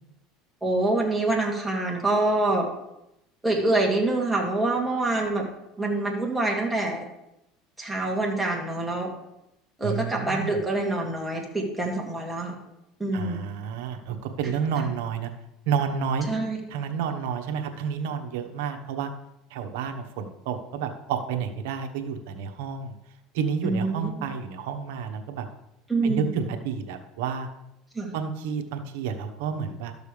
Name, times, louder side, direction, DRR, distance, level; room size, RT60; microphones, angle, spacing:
voice 1, 0.6-2.7 3.4-5.5 5.8-7.1 7.8-9.1 9.8-12.5 13.0-13.4 16.3-16.6 23.6-24.1 25.9-26.3 27.9-28.1, right 2 dB, 5° right, -1 dB, 2.3 m, -25 dB
voice 2, 9.8-10.5 13.1-15.3 15.7-16.3 16.7-19.1 19.5-22.9 23.3-25.5 26.0-27.5 28.1-29.9, right 7 dB, 75° right, 5 dB, 1.1 m, -30 dB
12.5 x 6.8 x 3.3 m, 0.85 s
supercardioid pair, 105°, 0 cm